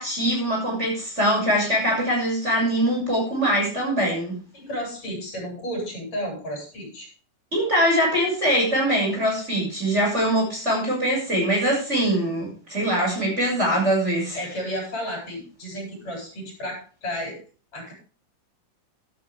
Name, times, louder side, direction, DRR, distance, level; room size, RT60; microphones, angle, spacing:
voice 1, 0.0-4.3 7.5-14.4, equal, 20° right, -2 dB, 6.9 m, -23 dB
voice 2, 4.5-7.1 14.4-17.4 17.7-17.9, equal, 55° left, 0 dB, 8.6 m, -32 dB
13.5 x 12.0 x 3.6 m, 0.37 s
omnidirectional pair, 3.7 m